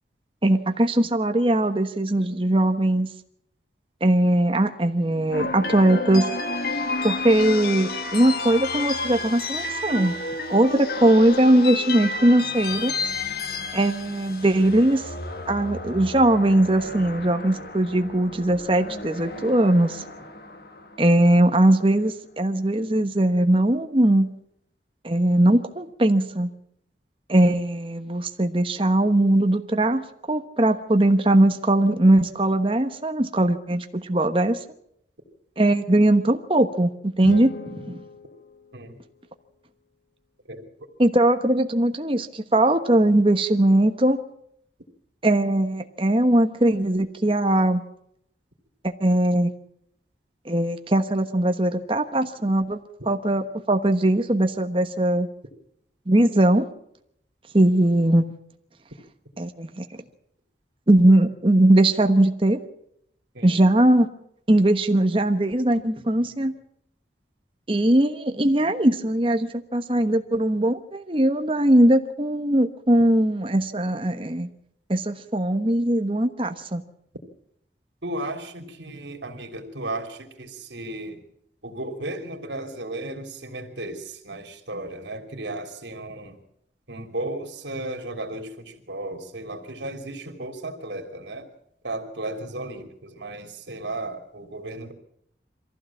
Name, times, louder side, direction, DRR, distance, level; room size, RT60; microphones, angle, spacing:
voice 1, 0.4-3.1 4.0-6.3 7.0-10.1 10.5-12.9 13.7-15.0 15.5-20.0 21.0-24.3 25.0-26.5 27.3-34.6 35.6-38.0 41.0-44.2 45.2-47.8 48.8-49.5 50.4-55.3 56.1-56.7 57.5-58.2 59.4-59.9 60.9-62.6 63.4-64.1 64.5-66.5 67.7-74.5 74.9-76.8, right 1 dB, 30° right, 7 dB, 1.2 m, -20 dB
sound 1, 5.3-21.5, left 3 dB, 55° left, 1.9 m, -31 dB
sound 2, 37.1-39.4, left 4 dB, 75° left, 1.6 m, -38 dB
voice 2, 78.0-81.2 81.6-86.4 86.9-91.5 91.8-94.9, right 2 dB, 85° right, 5 dB, 3.2 m, -34 dB
23.0 x 15.5 x 7.3 m, 0.73 s
head